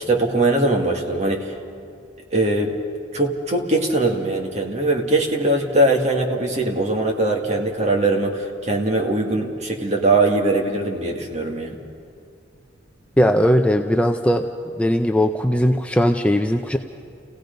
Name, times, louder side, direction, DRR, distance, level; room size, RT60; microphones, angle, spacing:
voice 1, 0.1-1.5 2.3-2.7 3.1-11.8, right 2 dB, 35° right, 1 dB, 1.9 m, -21 dB
voice 2, 13.2-14.5 14.8-16.8, equal, 5° left, 5 dB, 0.5 m, -18 dB
30.0 x 16.5 x 5.3 m, 2.3 s
head